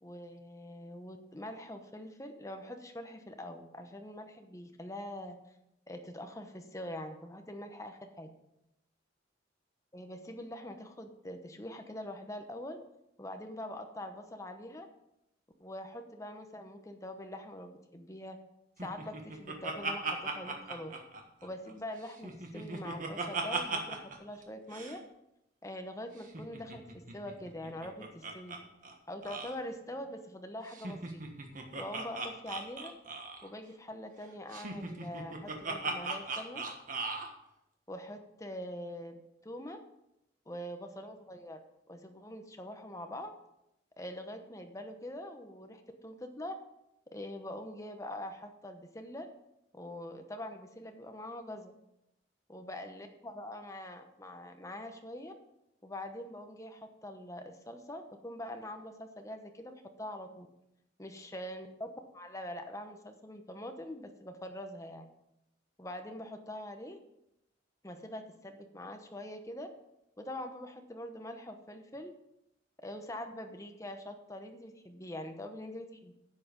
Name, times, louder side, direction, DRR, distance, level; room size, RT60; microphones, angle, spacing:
voice 1, 0.0-5.4 5.9-8.3 9.9-12.8 13.2-14.9 15.6-18.4 18.8-21.0 21.4-25.0 25.6-28.6 29.1-31.2 31.8-32.9 33.4-36.6 37.9-39.2 39.4-39.8 40.5-41.6 41.9-43.3 44.0-46.6 47.1-49.3 49.7-51.7 52.5-55.3 55.8-60.5 61.0-65.1 65.8-67.0 67.8-69.7 70.2-72.1 72.8-76.1, left 1 dB, 15° left, 6 dB, 0.9 m, -44 dB
Laughter, 18.8-21.7 22.1-24.2 24.4-24.5 24.7-25.0 26.2-28.6 28.8-28.9 29.2-29.5 30.7-33.5 34.5-37.3, right 3 dB, 45° right, 1.4 m, -38 dB
10.5 x 7.8 x 5.2 m, 0.86 s
head